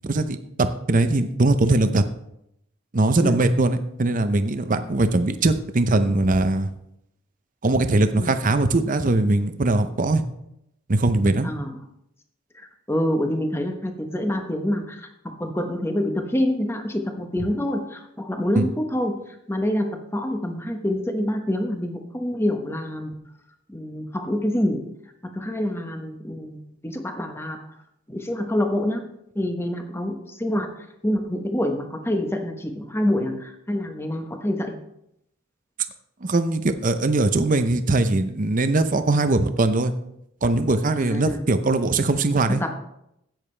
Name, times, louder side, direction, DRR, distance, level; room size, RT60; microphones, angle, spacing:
voice 1, 0.0-2.0 2.9-6.7 7.6-10.2 10.9-11.5 18.6-18.7 36.2-39.9 40.4-42.6, right 2 dB, 40° right, 10 dB, 0.7 m, -21 dB
voice 2, 11.4-11.8 12.5-19.2 19.5-23.2 23.7-24.9 25.2-27.6 28.1-29.0 29.3-30.7 31.0-34.8 41.0-41.4 42.5-42.8, left 1 dB, 10° left, 5 dB, 1.0 m, -26 dB
13.5 x 9.1 x 3.3 m, 0.78 s
head